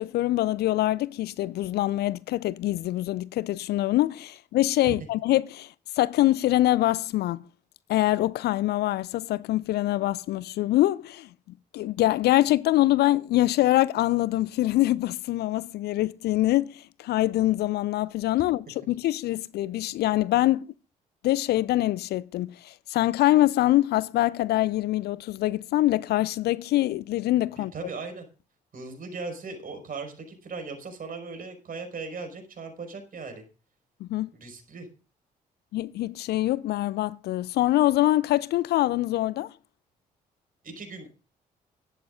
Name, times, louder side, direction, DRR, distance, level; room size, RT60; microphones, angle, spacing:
voice 1, 0.0-7.4 7.9-11.3 11.7-20.7 21.2-27.7 34.0-34.3 35.7-39.5, left 15 dB, 55° left, 0.5 m, -24 dB
voice 2, 27.6-28.2 28.7-33.4 34.3-34.9 40.6-41.1, right 4 dB, 45° right, 5.3 m, -38 dB
17.0 x 13.0 x 2.6 m
figure-of-eight pair, 40°, 20 cm